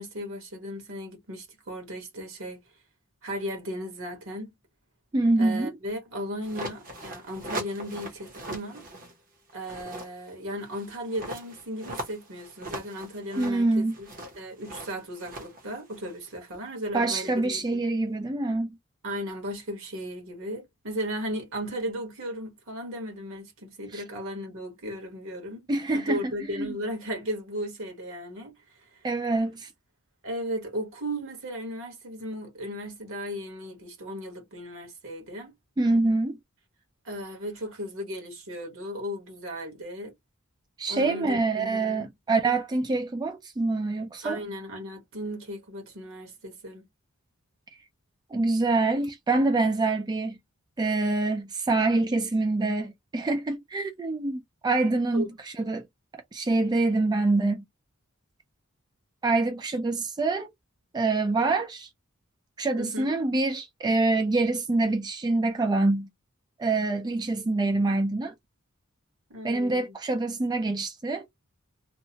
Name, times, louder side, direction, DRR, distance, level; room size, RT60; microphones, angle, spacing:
voice 1, 0.0-2.6 3.2-4.5 5.4-8.8 9.5-14.1 14.4-17.8 19.0-25.7 25.9-28.5 28.8-29.0 30.2-35.5 37.0-40.1 40.9-42.1 44.2-46.9 55.1-55.4 62.8-63.1 69.3-69.9, equal, 65° right, 1.2 m, -36 dB
voice 2, 5.1-5.7 13.4-13.9 16.9-18.8 23.9-24.0 25.7-26.2 26.5-26.7 29.0-29.7 35.8-36.4 40.8-44.4 48.3-50.4 50.8-55.9 56.3-57.6 59.2-60.5 60.9-61.9 62.6-66.1 66.6-68.3 69.4-71.3, right 2 dB, 20° right, 0.3 m, -25 dB
sound 1, 6.4-9.1 9.5-16.6, right 1 dB, 40° right, 0.8 m, -40 dB
2.7 x 2.1 x 2.7 m
head